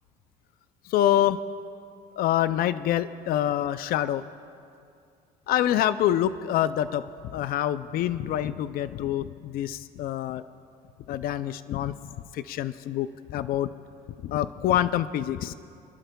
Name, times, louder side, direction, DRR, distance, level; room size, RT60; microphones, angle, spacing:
voice 1, 0.9-1.4 2.2-4.2 5.5-10.4 11.1-11.9 12.3-13.7 14.2-15.5, left 12 dB, 60° left, 14 dB, 0.4 m, -26 dB
28.5 x 11.5 x 2.3 m, 2.4 s
cardioid pair, 110°, 17 cm